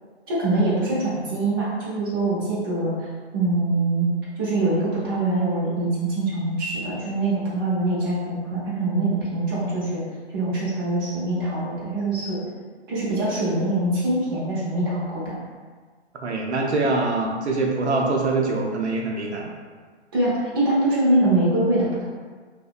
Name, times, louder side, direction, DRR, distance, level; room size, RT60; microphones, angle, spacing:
voice 1, 0.3-3.1 3.3-4.1 4.4-10.0 10.3-12.4 12.9-15.3 20.1-22.0, right 2 dB, 20° right, -8 dB, 0.5 m, -23 dB
voice 2, 16.2-19.5, right 3 dB, 75° right, -1 dB, 0.5 m, -24 dB
2.6 x 2.0 x 2.3 m, 1.5 s
figure-of-eight pair, 125°, 34 cm